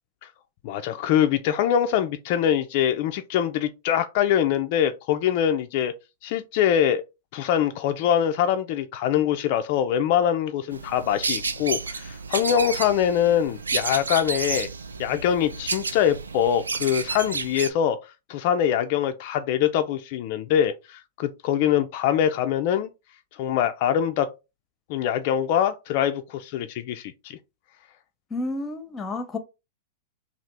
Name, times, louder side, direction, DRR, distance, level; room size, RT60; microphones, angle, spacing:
voice 1, 0.6-5.9 6.2-7.0 7.3-14.7 15.0-18.0 18.3-22.9 23.4-24.3 24.9-27.4, left 9 dB, 50° left, 0.3 m, -23 dB
sound 1, 10.7-17.7, right 4 dB, 85° right, 0.3 m, -31 dB
voice 2, 28.3-29.4, left 2 dB, 20° left, 0.7 m, -30 dB
2.8 x 2.4 x 3.3 m
hypercardioid pair, 100°, 0 cm